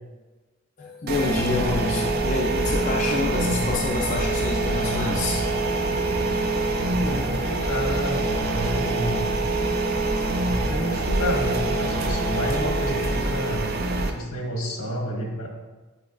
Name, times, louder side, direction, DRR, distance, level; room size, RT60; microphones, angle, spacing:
voice 1, 0.8-5.5, left 3 dB, 35° left, -2 dB, 0.5 m, -27 dB
sound 1, 1.1-14.1, right 2 dB, 45° right, 0.5 m, -25 dB
voice 2, 7.0-8.2 8.5-9.4 10.6-13.7 14.1-15.5, equal, 85° left, 0 dB, 1.3 m, -29 dB
8.0 x 4.9 x 2.5 m, 1.2 s
head